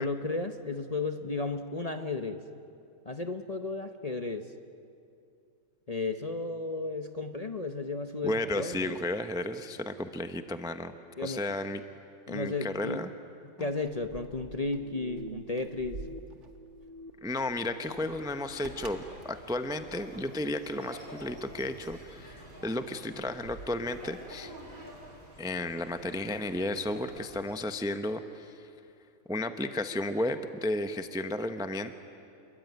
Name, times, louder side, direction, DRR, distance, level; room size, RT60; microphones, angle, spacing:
voice 1, 0.0-2.4 3.0-4.5 5.9-9.0 11.2-11.4 12.3-13.0 13.6-16.0, left 3 dB, 30° left, 7 dB, 0.9 m, -34 dB
voice 2, 8.2-11.8 12.3-13.1 13.6-13.7 17.2-24.5 25.4-28.7 29.3-31.9, left 1 dB, 5° right, 8 dB, 0.7 m, -33 dB
Keys jangling, 13.8-20.6, right 3 dB, 55° right, 1.8 m, -49 dB
sound 1, 14.4-16.2 16.5-18.1 18.5-18.9, right 1 dB, 35° right, 1.7 m, -47 dB
sound 2, 17.8-27.6, right 1 dB, 80° right, 6.3 m, -49 dB
28.5 x 22.5 x 9.3 m, 2.6 s
omnidirectional pair, 1.5 m